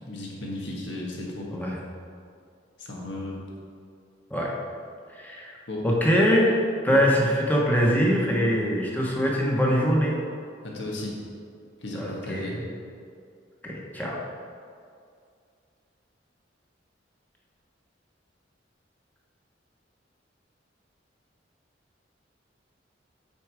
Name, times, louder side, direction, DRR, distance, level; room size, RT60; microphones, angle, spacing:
voice 1, 0.1-1.5 2.8-3.4 5.7-5.9 6.9-7.0 10.6-11.2 11.8-12.6, left 1 dB, 70° left, -3 dB, 1.5 m, -34 dB
voice 2, 5.1-5.6 5.8-10.2 11.9-12.6 13.6-14.2, equal, 10° left, -3 dB, 1.1 m, -23 dB
8.5 x 4.7 x 4.8 m, 2.3 s
head